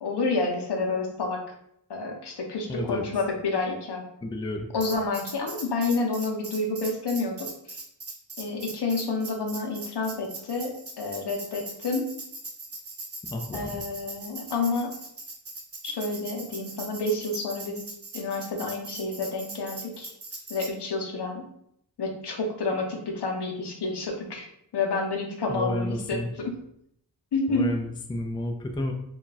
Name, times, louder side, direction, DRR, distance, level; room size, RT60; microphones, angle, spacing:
voice 1, 0.0-1.4 1.9-4.0 4.7-7.8 8.4-12.1 13.5-14.9 15.8-17.8 18.1-20.1 20.5-21.5 22.0-24.5 24.7-26.5 27.3-27.7, left 3 dB, 75° left, 2 dB, 0.7 m, -29 dB
voice 2, 2.7-3.0 4.2-4.7 13.3-13.8 25.5-26.3 27.5-28.9, left 1 dB, 10° left, 3 dB, 0.3 m, -31 dB
Tambourine, 4.8-20.7, right 3 dB, 35° right, 0.6 m, -40 dB
2.3 x 2.2 x 3.9 m, 0.72 s
wide cardioid pair, 65°, 41 cm